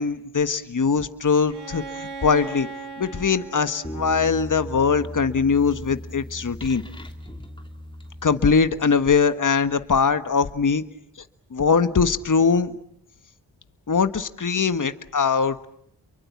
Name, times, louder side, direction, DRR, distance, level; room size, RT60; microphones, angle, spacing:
voice 1, 0.0-2.7 3.0-6.8 8.2-10.8 11.5-12.7 13.9-15.7, left 5 dB, 45° left, 10 dB, 1.5 m, -21 dB
Bowed string instrument, 1.5-5.3, right 4 dB, 65° right, 2.8 m, -39 dB
sound 1, 3.8-8.8, equal, 10° left, 3.1 m, -37 dB
29.5 x 23.5 x 7.3 m, 0.73 s
cardioid pair, 45°, 43 cm